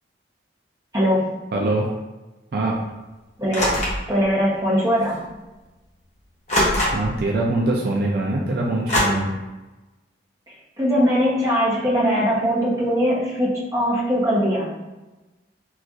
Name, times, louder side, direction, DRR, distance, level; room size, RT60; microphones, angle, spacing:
voice 1, 0.9-1.5 3.4-3.8 4.1-5.2 10.5-14.7, equal, 20° right, -6 dB, 0.7 m, -21 dB
voice 2, 1.5-1.9 2.5-2.8 6.9-9.4, right 2 dB, 55° right, -2 dB, 0.4 m, -23 dB
sound 1, 3.5-4.1 5.1-5.2 6.5-7.2 8.9-9.0, left 1 dB, 40° left, 0.8 m, -21 dB
4.0 x 2.4 x 2.4 m, 1.1 s
head